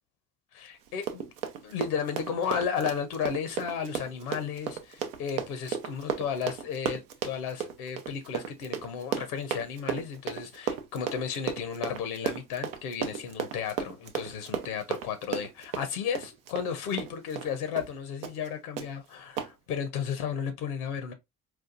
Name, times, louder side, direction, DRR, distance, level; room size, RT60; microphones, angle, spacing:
voice 1, 0.5-1.2 1.6-21.1, left 7 dB, 80° left, 0.7 m, -33 dB
Run, 0.9-17.5 17.8-17.9 18.2-18.5 18.8-18.9 19.4-19.5, right 8 dB, 80° right, 0.6 m, -34 dB
4.3 x 2.3 x 2.5 m
figure-of-eight pair, 45°, 44 cm